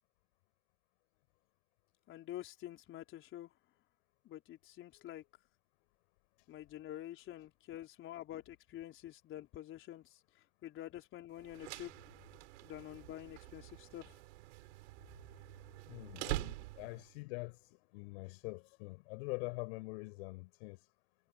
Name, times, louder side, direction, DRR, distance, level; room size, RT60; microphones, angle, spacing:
voice 1, 2.1-3.5 4.2-5.2 6.5-10.2 10.6-11.9 12.6-14.2, left 13 dB, 25° left, 4.3 m, -48 dB
sound 1, 11.4-17.1, right 19 dB, 50° right, 6.3 m, -45 dB
voice 2, 15.8-20.9, left 27 dB, 45° left, 5.6 m, -45 dB
hypercardioid pair, 115°, 45 cm